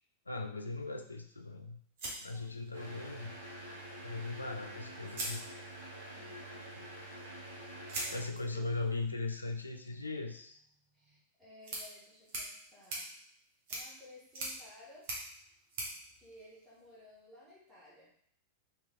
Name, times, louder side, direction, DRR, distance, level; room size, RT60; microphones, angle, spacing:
voice 1, 0.3-1.8 2.2-3.3 4.0-5.4 6.7-6.9 8.1-10.6, left 3 dB, 80° left, 5 dB, 0.3 m, -39 dB
sound 1, 2.0-3.1 4.4-4.5 5.0-6.1 7.9-17.1, right 2 dB, 50° right, 1.0 m, -45 dB
voice 2, 2.2-2.5 6.1-6.7 8.4-8.7 10.9-13.1 13.7-15.1 16.1-18.1, equal, 5° right, -9 dB, 1.2 m, -57 dB
sound 2, 2.7-8.2, right 1 dB, 80° right, 1.2 m, -47 dB
3.3 x 3.0 x 2.4 m, 0.66 s
figure-of-eight pair, 90°, 0 cm